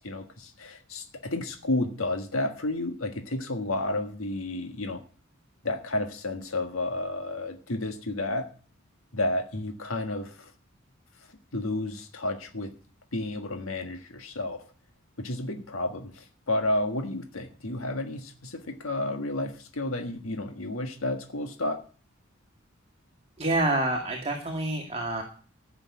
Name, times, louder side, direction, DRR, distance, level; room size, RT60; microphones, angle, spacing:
voice 1, 0.0-5.0 5.6-8.5 9.1-10.5 11.3-12.7 13.1-14.6 15.2-21.8, left 2 dB, 85° left, 5 dB, 1.6 m, -31 dB
voice 2, 23.4-25.2, right 2 dB, 30° right, 1 dB, 2.1 m, -27 dB
15.0 x 6.9 x 9.5 m, 0.41 s
head